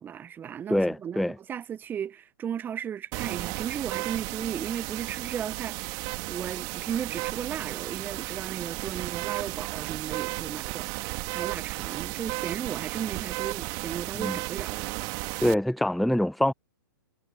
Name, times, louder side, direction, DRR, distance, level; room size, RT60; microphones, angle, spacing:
voice 1, 0.0-14.9, right 8 dB, 15° right, 1.1 m, -35 dB
voice 2, 0.7-1.4 14.2-14.4 15.4-16.5, left 1 dB, ahead, 0.4 m, -25 dB
sound 1, 3.1-15.5, right 27 dB, 35° right, 2.4 m, -34 dB
figure-of-eight pair, 115°, 11 cm